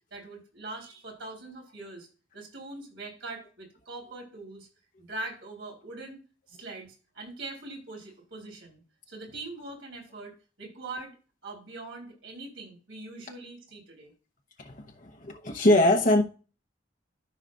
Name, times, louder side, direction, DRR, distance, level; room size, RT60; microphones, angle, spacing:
voice 1, 0.1-2.1 2.3-4.7 5.0-6.2 6.5-8.8 9.1-11.2 11.4-14.1, right 2 dB, 70° right, 3.8 m, -42 dB
voice 2, 14.6-16.2, left 1 dB, 45° left, 0.9 m, -23 dB
13.5 x 5.6 x 2.5 m
head